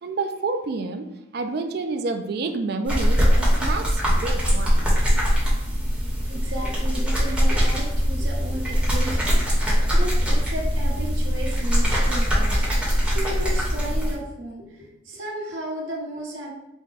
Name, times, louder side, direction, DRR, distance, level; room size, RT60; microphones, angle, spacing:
voice 1, 0.0-4.8, right 3 dB, 55° right, 0.3 m, -29 dB
sound 1, 2.9-14.1, equal, 5° right, 1.0 m, -21 dB
voice 2, 6.3-16.5, right 1 dB, 75° right, 1.1 m, -34 dB
4.7 x 2.2 x 3.9 m
head